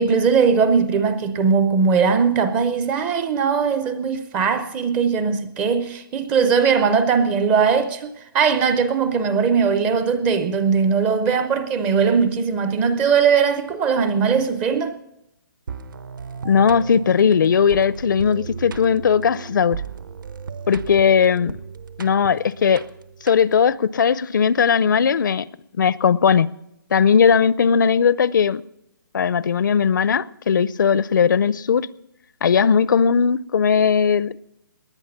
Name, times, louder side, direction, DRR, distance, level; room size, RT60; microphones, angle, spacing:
voice 1, 0.0-15.0, right 6 dB, 10° right, 0.4 m, -19 dB
sound 1, 15.7-23.8, right 6 dB, 65° right, 1.0 m, -36 dB
voice 2, 16.4-19.8 20.7-21.6 22.0-22.8 23.2-25.5 25.8-26.5 26.9-28.6 29.1-31.9 32.4-34.4, left 6 dB, 60° left, 0.5 m, -18 dB
19.5 x 10.5 x 5.8 m
hypercardioid pair, 165°, 12 cm